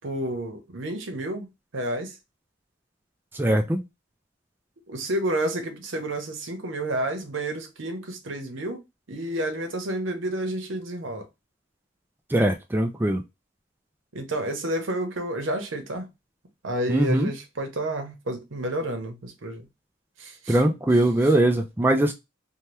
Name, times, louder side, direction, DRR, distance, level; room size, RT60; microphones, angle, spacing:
voice 1, 0.0-1.5 1.7-2.1 4.9-8.8 9.1-11.2 14.1-16.1 16.6-19.6 20.2-20.6, right 1 dB, 75° right, 0.9 m, -30 dB
voice 2, 3.3-3.8 12.3-13.2 16.9-17.3 20.5-22.1, right 1 dB, 10° right, 0.3 m, -21 dB
2.8 x 2.2 x 3.2 m
head